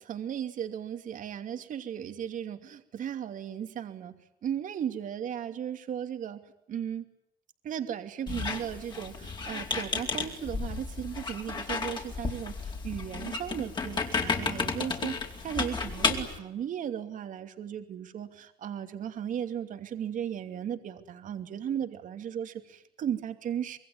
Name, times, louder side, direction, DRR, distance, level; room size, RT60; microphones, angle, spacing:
voice 1, 0.0-4.1 4.4-6.4 6.7-7.1 7.6-23.8, right 9 dB, 45° right, 7 dB, 2.8 m, -36 dB
Squeak, 8.3-16.4, left 4 dB, 25° left, 4.4 m, -33 dB
26.0 x 22.5 x 9.5 m, 0.82 s
cardioid pair, 120°, 19 cm